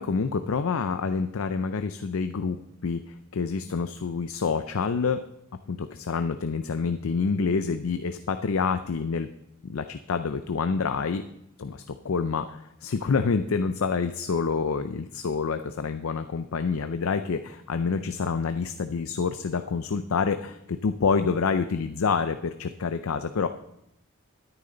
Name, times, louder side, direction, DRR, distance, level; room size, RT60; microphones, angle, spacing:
voice 1, 0.0-5.2 5.7-9.3 9.6-11.3 11.6-23.5, left 5 dB, 75° left, 9 dB, 0.5 m, -27 dB
13.0 x 10.0 x 3.9 m, 0.81 s
head